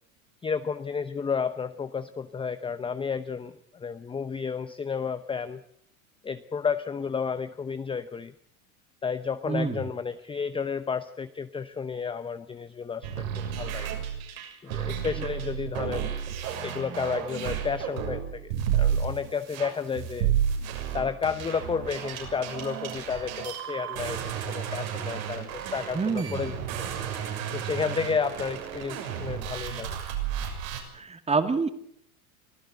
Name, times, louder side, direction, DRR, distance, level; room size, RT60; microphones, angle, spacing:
voice 1, 0.4-5.6 6.2-8.3 9.0-13.9 14.6-16.1 16.6-20.3 20.9-24.2 24.5-26.9 27.5-30.0, left 6 dB, 10° left, 11 dB, 0.8 m, -32 dB
voice 2, 9.5-9.8 25.9-26.4 30.9-31.7, right 4 dB, 15° right, 9 dB, 2.4 m, -26 dB
sound 1, 13.0-30.8, right 9 dB, 75° right, 6.8 m, -32 dB
24.5 x 15.0 x 7.9 m, 0.68 s
supercardioid pair, 115°, 42 cm